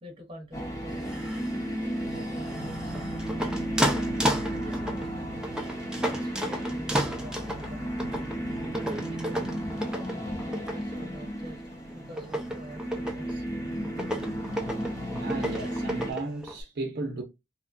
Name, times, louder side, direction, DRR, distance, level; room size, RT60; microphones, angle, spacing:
voice 1, 0.0-1.5 2.0-3.4 4.5-5.4 6.0-8.2 8.7-9.3 9.9-13.4, right 1 dB, 30° right, 0.9 m, -45 dB
sound 1, 0.5-16.1, right 1 dB, 20° left, 1.0 m, -34 dB
sound 2, 0.9-16.6, equal, 5° right, 0.4 m, -34 dB
sound 3, 8.0-16.0, left 1 dB, 55° left, 1.0 m, -42 dB
voice 2, 15.2-17.2, right 3 dB, 60° right, 0.6 m, -34 dB
2.9 x 2.2 x 2.5 m
head